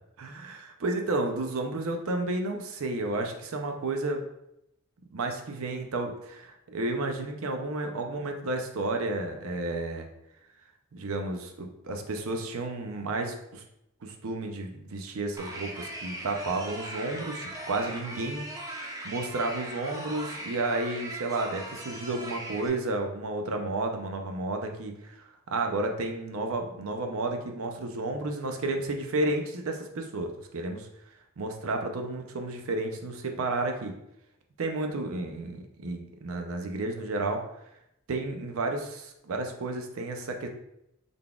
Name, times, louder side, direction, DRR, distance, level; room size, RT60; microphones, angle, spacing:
voice 1, 0.2-4.2 5.1-10.1 10.9-13.6 14.0-18.4 18.7-25.2 25.5-30.9 31.4-33.9 34.6-37.4 38.1-40.5, right 2 dB, 70° right, 4 dB, 0.5 m, -32 dB
sound 1, 15.4-22.7, right 1 dB, 15° right, 0.5 m, -39 dB
3.9 x 3.4 x 2.3 m, 0.81 s
head